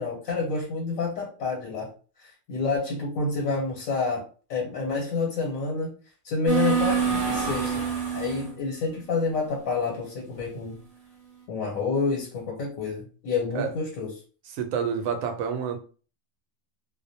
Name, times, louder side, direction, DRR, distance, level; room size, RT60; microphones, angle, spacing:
voice 1, 0.0-1.9 2.2-4.2 4.5-5.9 6.2-7.7 8.1-10.8 11.5-14.1, left 4 dB, 85° left, 1.2 m, -28 dB
sound 1, 6.5-8.5, right 6 dB, 30° right, 0.8 m, -26 dB
voice 2, 14.5-15.8, right 7 dB, 85° right, 1.0 m, -28 dB
2.5 x 2.1 x 2.6 m
omnidirectional pair, 1.4 m